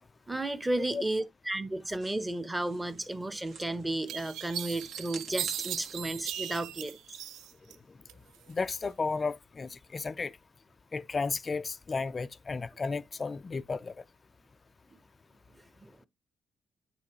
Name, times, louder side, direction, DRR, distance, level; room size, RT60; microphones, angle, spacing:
voice 1, 0.3-7.0 14.9-15.0 15.5-16.0, right 1 dB, 15° right, 0.9 m, -33 dB
sound 1, 2.0-7.3, right 4 dB, 65° right, 1.7 m, -51 dB
sound 2, 3.4-3.5 4.1-7.8 8.1-8.8, right 11 dB, 85° right, 0.3 m, -38 dB
voice 2, 8.5-10.4 10.9-14.0, left 4 dB, 30° left, 0.4 m, -33 dB
9.7 x 3.7 x 2.9 m
cardioid pair, 90°, 0 cm